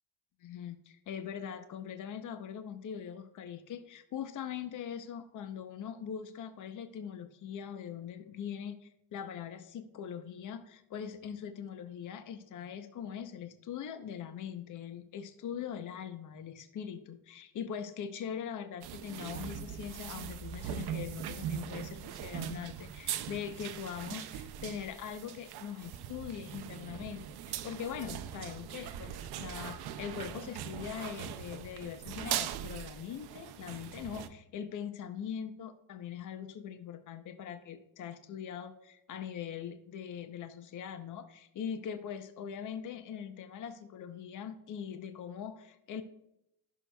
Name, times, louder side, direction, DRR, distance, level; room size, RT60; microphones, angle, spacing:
voice 1, 0.4-46.0, left 8 dB, 45° left, 9 dB, 0.7 m, -42 dB
sound 1, 18.8-34.3, right 10 dB, 65° right, 0.7 m, -41 dB
15.0 x 6.5 x 2.3 m, 0.82 s
cardioid pair, 175°, 42 cm